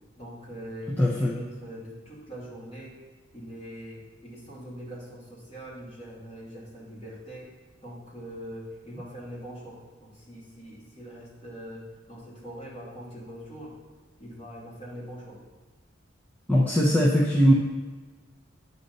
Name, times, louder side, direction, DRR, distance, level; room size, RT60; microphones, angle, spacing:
voice 1, 0.2-3.0 3.3-7.5 7.8-13.8 14.2-15.4, equal, 30° left, -6 dB, 2.5 m, -42 dB
voice 2, 1.0-1.3 16.5-17.5, equal, 10° left, -5 dB, 0.7 m, -20 dB
9.0 x 4.1 x 6.6 m, 1.3 s
head